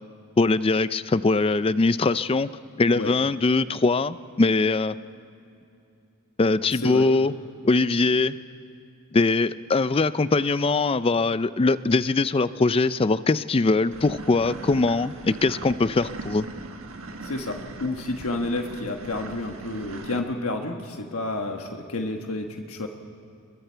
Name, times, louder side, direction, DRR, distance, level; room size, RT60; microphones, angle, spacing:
voice 1, 0.4-2.5 2.8-5.0 6.4-7.3 7.6-8.4 9.1-16.5, left 3 dB, 25° left, 15 dB, 0.4 m, -22 dB
voice 2, 6.7-7.1 17.2-22.9, left 2 dB, 70° left, 3 dB, 1.3 m, -30 dB
sound 1, 13.9-20.2, right 3 dB, 65° right, 1.4 m, -39 dB
29.0 x 22.5 x 4.5 m, 2.6 s
head